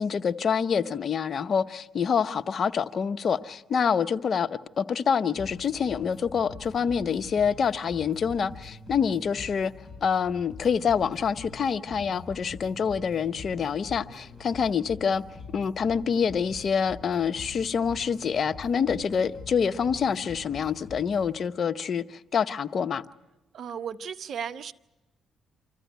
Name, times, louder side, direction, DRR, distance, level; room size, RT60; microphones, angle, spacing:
voice 1, 0.0-9.7 10.0-15.2 15.5-23.0, left 6 dB, 50° left, 0.8 m, -26 dB
sound 1, 5.4-21.4, left 3 dB, 30° left, 7.7 m, -45 dB
voice 2, 23.5-24.7, right 7 dB, 60° right, 0.8 m, -35 dB
26.0 x 14.5 x 9.2 m
cardioid pair, 90°, 0 cm